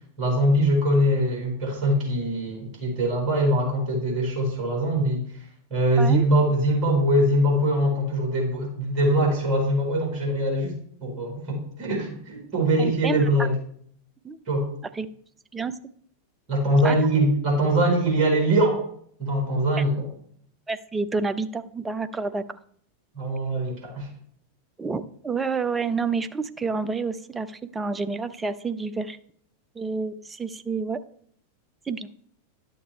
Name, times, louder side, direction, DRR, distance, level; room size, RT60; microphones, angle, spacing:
voice 1, 0.2-5.5 5.7-13.5 14.5-14.7 16.5-18.8 19.2-20.1 23.1-24.1, right 1 dB, 40° right, 0 dB, 3.9 m, -23 dB
voice 2, 12.8-13.3 14.2-14.4 15.0-15.1 15.5-15.7 16.8-17.0 20.7-22.6 24.8-29.2 29.8-31.0 31.9-32.1, right 4 dB, 15° right, 12 dB, 0.6 m, -29 dB
11.5 x 6.6 x 3.2 m, 0.62 s
figure-of-eight pair, 90°, 0 cm